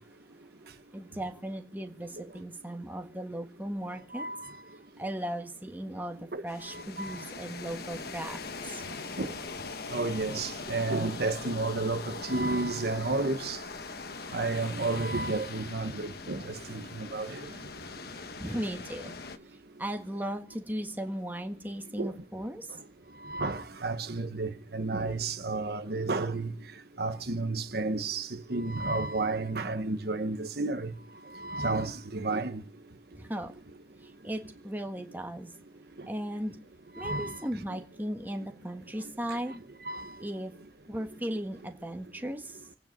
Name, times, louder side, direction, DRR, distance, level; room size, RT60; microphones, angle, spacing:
voice 1, 0.9-4.3 5.0-8.8 18.4-19.2 19.8-22.8 33.1-33.5 34.0-35.5 36.0-36.6 36.9-39.6 40.2-40.5 40.9-42.7, right 1 dB, 10° right, 1.6 m, -37 dB
voice 2, 4.1-4.5 6.3-6.4 6.7-7.2 9.2-9.3 9.9-13.6 14.3-17.4 22.0-22.1 23.2-26.5 27.0-30.9 31.3-32.6 37.0-37.4 39.3-39.4 39.8-40.1, right 3 dB, 60° right, 1.1 m, -31 dB
sound 1, 6.5-19.4, left 4 dB, 60° left, 1.2 m, -41 dB
26.0 x 9.3 x 5.2 m
head